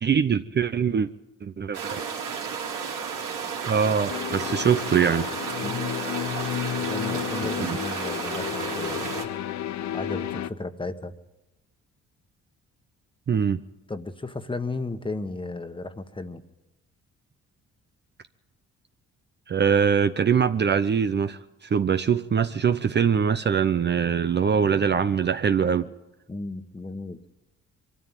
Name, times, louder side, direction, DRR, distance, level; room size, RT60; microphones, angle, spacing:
voice 1, 0.0-1.1 1.4-2.0 3.7-5.3 7.6-7.8 13.3-13.6 19.5-25.9, right 7 dB, 35° right, 10 dB, 0.7 m, -23 dB
sound 1, 1.7-9.2, right 6 dB, 85° right, 3.5 m, -32 dB
sound 2, 4.1-10.5, left 11 dB, 65° left, 0.8 m, -32 dB
voice 2, 6.7-9.3 9.9-11.1 13.9-16.4 26.3-27.2, left 2 dB, 15° left, 8 dB, 1.4 m, -34 dB
22.5 x 13.5 x 9.0 m, 0.97 s
cardioid pair, 90°, 30 cm